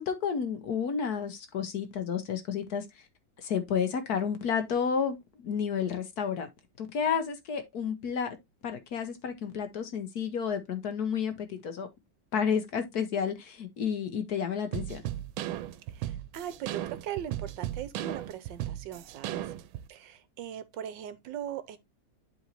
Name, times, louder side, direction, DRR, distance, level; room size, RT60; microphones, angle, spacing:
voice 1, 0.0-2.8 3.4-6.5 6.8-8.4 8.6-11.9 12.3-15.0, left 7 dB, 60° left, 1.2 m, -31 dB
sound 1, 14.7-19.9, right 13 dB, 90° right, 1.4 m, -36 dB
voice 2, 15.9-19.5 19.9-21.8, right 10 dB, 75° right, 1.3 m, -40 dB
11.0 x 3.9 x 2.9 m
omnidirectional pair, 2.1 m